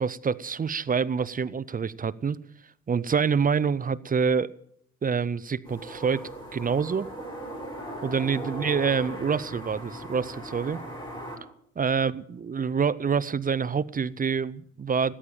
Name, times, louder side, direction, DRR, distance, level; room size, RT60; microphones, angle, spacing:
voice 1, 0.0-2.4 2.9-4.5 5.0-7.1 8.0-10.8 11.8-15.1, right 6 dB, 30° right, 0.6 m, -26 dB
sound 1, 5.6-11.4, right 1 dB, 15° left, 6.2 m, -38 dB
14.0 x 10.0 x 8.9 m
cardioid pair, 90°, 30 cm